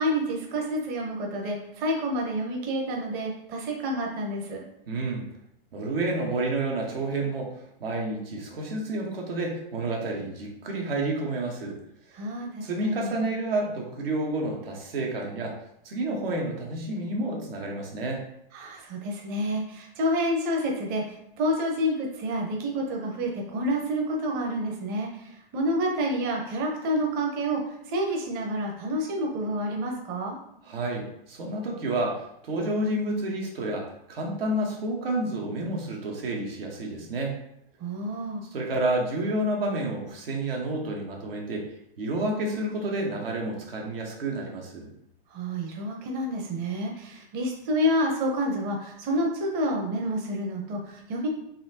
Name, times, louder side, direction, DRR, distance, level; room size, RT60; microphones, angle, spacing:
voice 1, 0.0-4.6 12.1-13.1 18.5-30.4 37.8-38.4 45.3-51.3, equal, 30° right, 0 dB, 0.8 m, -29 dB
voice 2, 4.9-5.2 5.7-7.5 7.8-11.8 12.6-15.5 15.8-18.2 30.7-37.4 38.5-41.7 42.0-44.9, right 2 dB, 80° right, -1 dB, 1.1 m, -29 dB
4.1 x 2.6 x 2.8 m, 0.75 s
hypercardioid pair, 115°, 29 cm